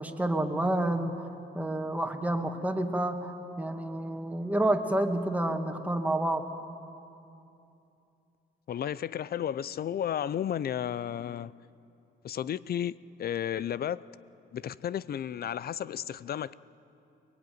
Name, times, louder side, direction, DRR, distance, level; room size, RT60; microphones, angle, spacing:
voice 1, 0.0-6.4, right 1 dB, 5° right, 2.0 m, -29 dB
voice 2, 8.7-11.5 12.2-14.0 14.5-16.5, left 9 dB, 50° left, 0.6 m, -33 dB
23.0 x 21.0 x 9.4 m
cardioid pair, 90°, 20 cm